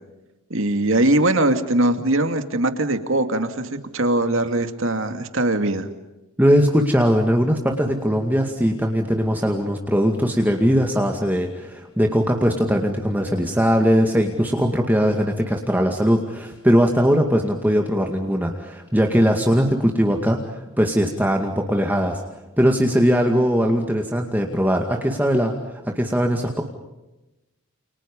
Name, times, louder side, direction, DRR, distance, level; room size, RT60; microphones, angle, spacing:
voice 1, 0.5-5.9, right 1 dB, 65° right, 7 dB, 2.6 m, -21 dB
voice 2, 6.4-22.2 22.6-26.6, equal, 10° right, 2 dB, 2.2 m, -20 dB
30.0 x 29.5 x 5.4 m, 1.0 s
head